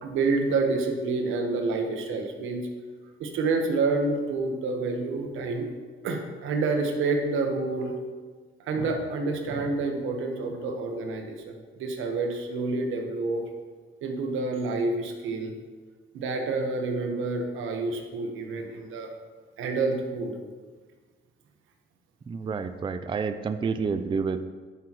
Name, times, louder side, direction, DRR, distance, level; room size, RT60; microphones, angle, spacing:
voice 1, 0.0-2.7 3.2-5.7 6.0-8.0 8.7-13.4 14.0-15.5 16.1-19.1 19.6-20.4, right 3 dB, 80° right, 3 dB, 1.1 m, -28 dB
voice 2, 22.3-24.4, right 5 dB, 25° right, 10 dB, 0.4 m, -29 dB
11.0 x 6.0 x 3.0 m, 1.4 s
cardioid pair, 90°, 20 cm